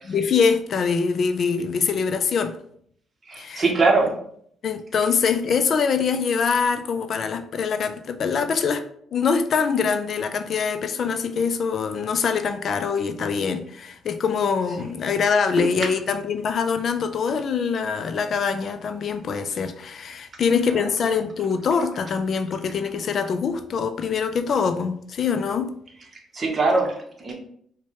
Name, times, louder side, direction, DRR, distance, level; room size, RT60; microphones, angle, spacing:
voice 1, 0.1-2.6 3.4-3.6 4.6-8.8 9.1-25.7, left 6 dB, 55° left, 8 dB, 0.4 m, -24 dB
voice 2, 3.3-4.1 15.6-15.7 20.7-20.8 26.3-27.3, right 3 dB, 35° right, 2 dB, 0.9 m, -22 dB
4.4 x 2.2 x 2.9 m, 0.64 s
cardioid pair, 90°, 0 cm